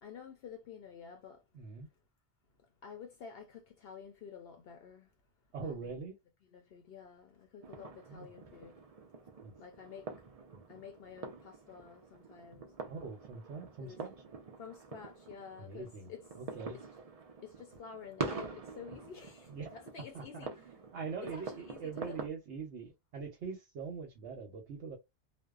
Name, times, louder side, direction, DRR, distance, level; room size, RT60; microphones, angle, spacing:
voice 1, 0.0-1.4 2.8-5.0 5.6-5.8 6.5-8.7 9.6-10.1 10.7-12.7 13.8-14.0 14.6-16.2 17.4-20.5 21.2-22.2, left 6 dB, 65° left, 0.7 m, -50 dB
voice 2, 1.5-1.9 5.5-6.2 8.1-8.3 9.4-9.5 12.8-14.1 15.6-16.8 19.4-19.8 20.1-25.0, right 5 dB, 75° right, 1.0 m, -43 dB
sound 1, 7.6-22.3, right 4 dB, 45° right, 0.5 m, -46 dB
2.6 x 2.1 x 2.3 m
omnidirectional pair, 1.2 m